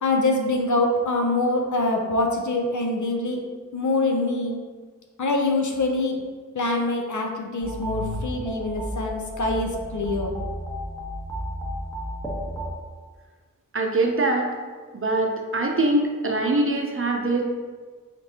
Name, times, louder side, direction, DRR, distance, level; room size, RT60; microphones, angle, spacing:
voice 1, 0.0-3.4 3.7-4.6 5.2-6.2 6.5-10.4, left 2 dB, 65° left, 2 dB, 0.7 m, -24 dB
sound 1, 7.6-12.7, equal, 10° left, 1.3 m, -32 dB
voice 2, 13.7-14.5 14.9-17.5, right 2 dB, 45° right, 1 dB, 0.7 m, -23 dB
5.0 x 3.1 x 2.9 m, 1.5 s
wide cardioid pair, 50°, 31 cm